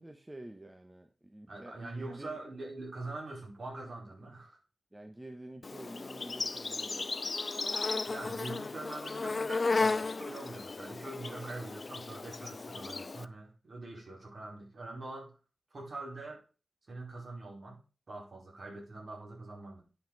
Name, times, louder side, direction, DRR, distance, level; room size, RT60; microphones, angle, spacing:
voice 1, 0.0-2.4 4.2-4.4 4.9-7.2, right 1 dB, 15° right, 1.0 m, -48 dB
voice 2, 1.5-4.6 8.1-15.3 15.7-16.4 16.9-17.8 18.1-19.8, right 2 dB, 50° right, 4.7 m, -44 dB
Insect, 5.6-13.2, left 3 dB, 40° left, 0.5 m, -35 dB
9.7 x 6.1 x 5.4 m
wide cardioid pair, 125°, 0 cm